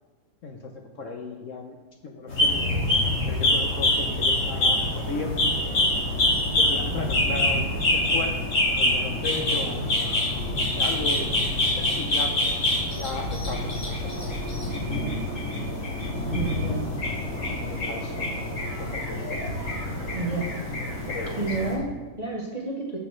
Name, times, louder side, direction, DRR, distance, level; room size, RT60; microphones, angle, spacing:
voice 1, 0.4-1.8 2.0-2.9 3.3-5.4 6.6-10.2 10.5-12.4 12.9-15.2 17.6-19.4 20.0-20.2 21.1-21.6, left 3 dB, 60° left, 3 dB, 0.9 m, -36 dB
sound 1, 2.3-21.7, left 1 dB, 80° left, 4.0 m, -26 dB
voice 2, 16.3-17.0 20.1-20.6 21.4-23.0, right 3 dB, 30° right, -2 dB, 0.8 m, -30 dB
14.0 x 6.1 x 3.2 m, 1.2 s
omnidirectional pair, 1.8 m